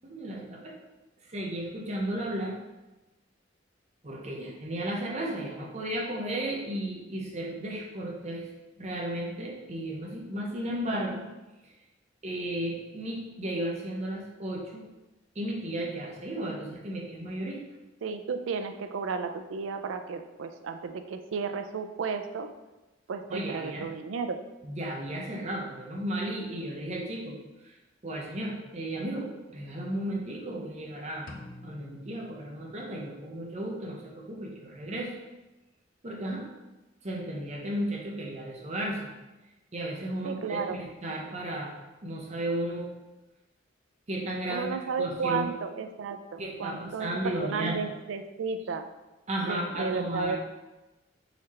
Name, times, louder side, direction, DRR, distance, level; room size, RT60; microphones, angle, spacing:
voice 1, 0.0-0.8 1.3-2.6 4.0-8.5 8.8-11.3 12.2-14.9 15.3-17.6 23.3-23.9 24.6-27.4 27.6-27.8 28.0-31.3 31.6-35.1 36.0-36.5 37.0-39.1 39.7-41.7 42.0-42.9 44.1-45.5 46.4-47.8 49.3-50.4, right 1 dB, 35° right, -2 dB, 0.7 m, -34 dB
voice 2, 18.0-22.5 23.1-24.4 40.2-40.8 44.5-48.9 49.4-50.4, right 5 dB, 90° right, 7 dB, 0.4 m, -33 dB
sound 1, 31.3-33.2, left 2 dB, 50° left, 0.5 m, -49 dB
4.0 x 3.2 x 4.2 m, 1.1 s
head